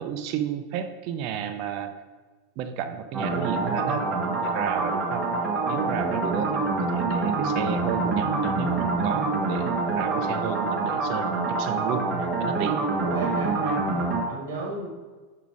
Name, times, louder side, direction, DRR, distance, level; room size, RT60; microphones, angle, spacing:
voice 1, 0.0-1.9 2.6-5.3 5.6-12.8 13.7-13.8, right 8 dB, 50° right, 7 dB, 0.6 m, -32 dB
sound 1, 3.1-14.2, right 3 dB, 25° right, 1.1 m, -26 dB
voice 2, 13.0-14.9, right 2 dB, 80° right, -1 dB, 1.6 m, -33 dB
5.8 x 5.2 x 4.8 m, 1.3 s
supercardioid pair, 145°, 0 cm